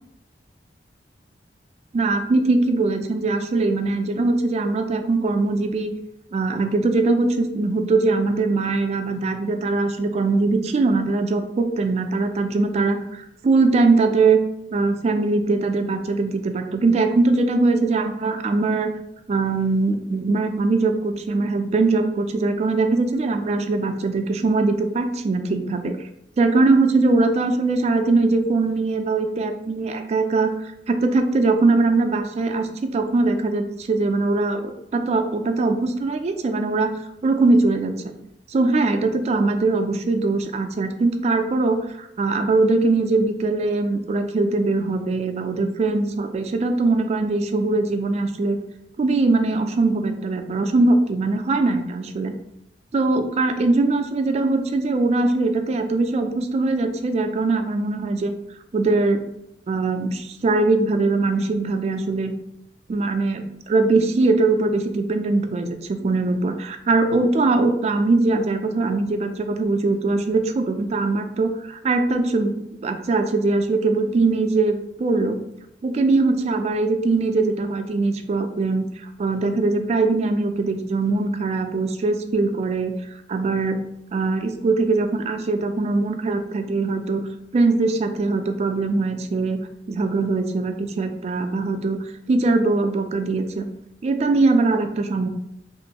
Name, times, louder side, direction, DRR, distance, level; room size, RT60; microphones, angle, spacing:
voice 1, 1.9-5.9 6.3-14.4 14.7-18.9 19.3-26.0 26.4-37.0 37.2-38.1 38.5-48.6 49.0-52.3 52.9-58.3 58.7-59.2 59.7-62.3 62.9-75.4 75.8-78.8 79.2-82.9 83.3-83.8 84.1-87.3 87.5-89.6 89.9-93.7 94.0-95.3, right 3 dB, 40° right, 6 dB, 0.3 m, -21 dB
3.0 x 2.5 x 2.8 m, 0.79 s
head